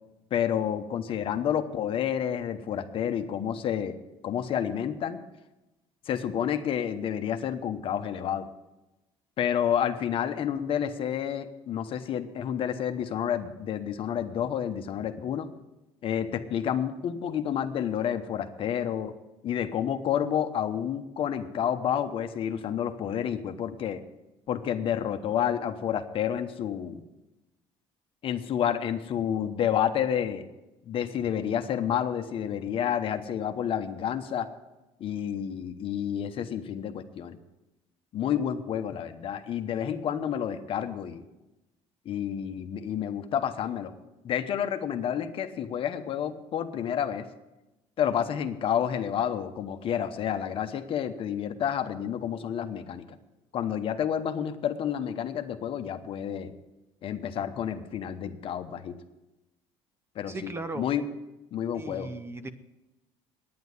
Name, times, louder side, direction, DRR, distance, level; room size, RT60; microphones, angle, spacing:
voice 1, 0.3-4.0 4.2-5.2 6.1-8.5 9.4-15.5 16.0-19.1 19.4-24.0 24.5-27.0 28.2-30.4 30.9-34.5 35.0-37.4 38.1-41.2 42.0-43.9 44.2-47.3 48.0-53.1 53.5-56.5 57.0-59.0 60.1-61.1 61.5-62.1, left 9 dB, 50° left, 9 dB, 1.0 m, -29 dB
voice 2, 60.3-60.9 61.7-62.5, right 2 dB, 20° right, 12 dB, 0.7 m, -37 dB
9.6 x 9.3 x 8.1 m, 1.0 s
cardioid pair, 115°, 12 cm